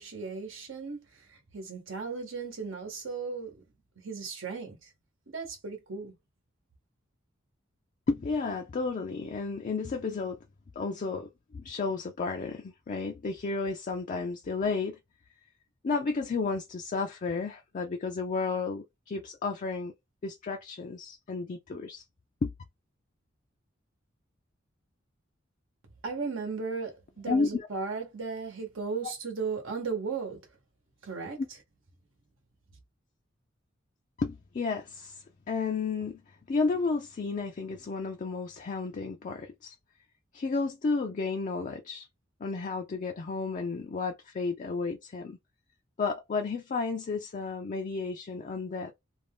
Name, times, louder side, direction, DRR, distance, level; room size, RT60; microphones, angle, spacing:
voice 1, 0.0-3.5 4.0-4.9 5.3-6.1 26.0-30.4 31.0-31.4, right 4 dB, 80° right, 0.9 m, -36 dB
voice 2, 8.1-10.4 10.8-15.0 15.8-19.9 20.2-22.0 22.4-22.5 27.3-27.7 34.2-36.2 36.5-39.8 40.3-42.1 42.4-45.4 46.0-48.9, left 4 dB, 40° left, 0.4 m, -32 dB
2.5 x 2.2 x 3.4 m
head